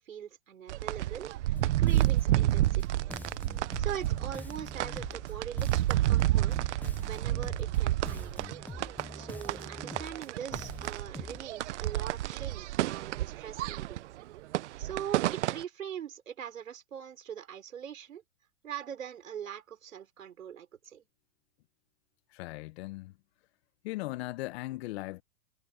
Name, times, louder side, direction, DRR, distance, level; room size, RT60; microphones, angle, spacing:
voice 1, 0.0-3.1 3.8-6.7 7.1-8.4 9.1-14.0 14.8-18.2 18.6-21.0, right 9 dB, 80° right, 4.9 m, -42 dB
sound 1, 0.7-15.6, right 15 dB, 60° right, 0.9 m, -30 dB
Bass guitar, 1.6-11.4, left 3 dB, 5° left, 0.9 m, -45 dB
voice 2, 22.3-23.1 23.8-25.2, left 19 dB, 50° left, 1.5 m, -38 dB
hypercardioid pair, 120°, 39 cm